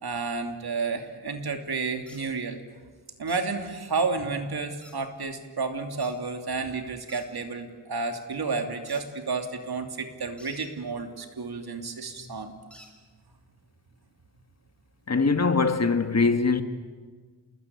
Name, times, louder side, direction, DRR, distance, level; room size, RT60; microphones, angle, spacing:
voice 1, 0.0-2.6 3.2-12.5, right 4 dB, 60° right, 2.9 m, -31 dB
sound 1, 2.1-2.2 3.3-3.4 4.8-5.0 6.0-6.1 7.1-7.3 8.9-9.0 10.4-10.6 12.7-12.9, left 1 dB, ahead, 5.8 m, -50 dB
voice 2, 15.1-16.6, left 4 dB, 40° left, 1.6 m, -22 dB
28.5 x 20.5 x 8.4 m
wide cardioid pair, 90°, 42 cm